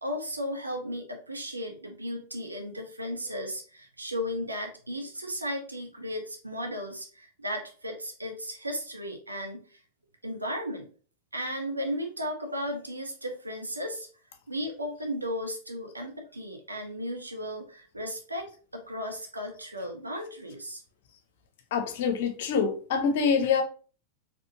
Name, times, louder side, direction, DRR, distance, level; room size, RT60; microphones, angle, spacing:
voice 1, 0.0-9.8 10.2-10.9 11.3-14.1 14.5-18.5 18.7-20.8, equal, 80° right, 0.9 m, -35 dB
voice 2, 21.7-23.6, left 6 dB, 55° left, 0.7 m, -25 dB
4.3 x 3.0 x 2.8 m
figure-of-eight pair, 90°, 0 cm